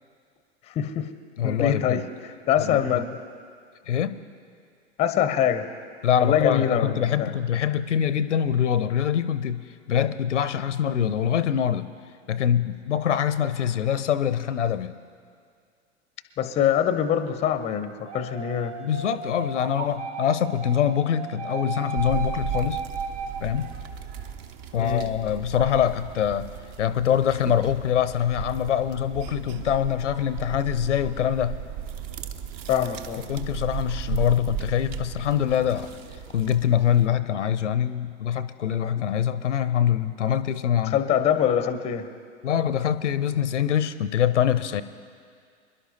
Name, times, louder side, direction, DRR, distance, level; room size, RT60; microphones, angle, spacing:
voice 1, 0.7-1.1 1.4-3.2 5.0-5.7 6.2-7.3 16.4-18.8 24.8-25.1 32.7-33.3 38.9-39.0 40.8-42.1, left 9 dB, 20° left, 11 dB, 0.6 m, -24 dB
voice 2, 1.4-2.0 2.6-2.8 3.9-4.2 6.0-11.9 12.3-15.0 18.8-22.8 23.4-23.7 24.7-26.5 26.8-31.6 33.3-35.9 36.3-41.0 42.4-44.8, left 9 dB, 75° left, 14 dB, 0.6 m, -24 dB
sound 1, 18.1-24.0, right 5 dB, 70° right, 1.3 m, -35 dB
sound 2, 22.0-37.1, right 8 dB, 40° right, 0.7 m, -36 dB
26.0 x 11.0 x 2.8 m, 2.2 s
figure-of-eight pair, 95°, 36 cm